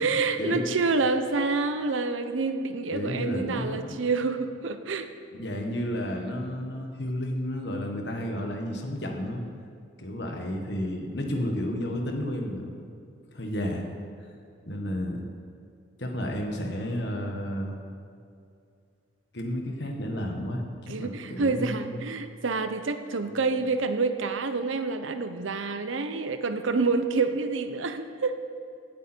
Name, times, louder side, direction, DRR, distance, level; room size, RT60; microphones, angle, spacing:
voice 1, 0.0-5.1 20.9-28.4, right 4 dB, 85° right, 9 dB, 0.8 m, -28 dB
voice 2, 2.9-4.0 5.3-9.4 10.0-12.7 13.3-13.9 14.7-15.2 16.0-17.7 19.3-22.0 23.2-23.3, equal, 60° left, 2 dB, 1.6 m, -32 dB
16.5 x 8.6 x 4.5 m, 2.4 s
head